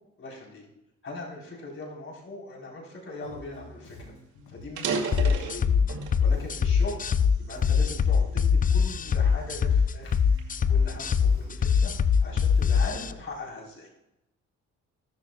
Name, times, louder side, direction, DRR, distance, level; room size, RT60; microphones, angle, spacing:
voice 1, 0.2-0.6 1.0-4.1 4.5-5.6 6.2-7.0 7.4-8.4 8.7-10.2 10.7-11.9 12.2-13.9, left 2 dB, 45° left, -2 dB, 3.8 m, -40 dB
Bass guitar, 3.2-13.1, left 2 dB, 90° left, 3.2 m, -49 dB
sound 1, 3.6-3.7 4.0-4.1 4.6-6.2 6.8-8.0 8.6-8.9 9.5-11.6, right 5 dB, 70° right, 2.2 m, -34 dB
sound 2, 5.1-13.1, left 6 dB, 30° left, 0.5 m, -23 dB
15.0 x 12.5 x 2.3 m, 0.89 s
cardioid pair, 90°, 30 cm